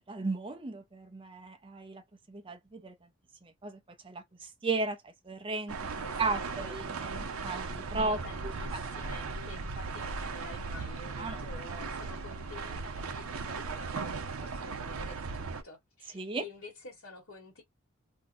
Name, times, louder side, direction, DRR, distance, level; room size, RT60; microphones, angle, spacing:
voice 1, 0.1-2.0 2.3-2.9 3.4-6.8 7.1-8.2 8.4-9.1 11.2-11.4 16.1-16.4, right 3 dB, 25° right, 0.5 m, -35 dB
sound 1, 5.7-15.6, right 4 dB, 85° right, 0.6 m, -37 dB
voice 2, 6.0-6.8 7.9-17.6, left 2 dB, 75° left, 1.3 m, -49 dB
2.7 x 2.1 x 3.8 m
head